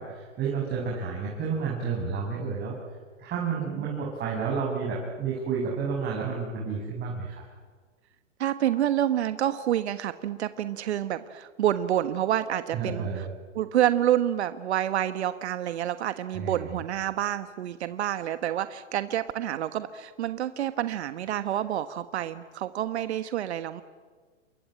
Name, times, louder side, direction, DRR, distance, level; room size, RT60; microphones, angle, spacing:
voice 1, 0.0-2.8 3.2-7.4 12.7-13.3 16.3-16.8, right 5 dB, 25° right, -3 dB, 7.0 m, -31 dB
voice 2, 8.4-13.3 13.5-23.8, right 11 dB, 60° right, 11 dB, 1.4 m, -28 dB
29.0 x 22.5 x 9.1 m, 1.5 s
hypercardioid pair, 115°, 37 cm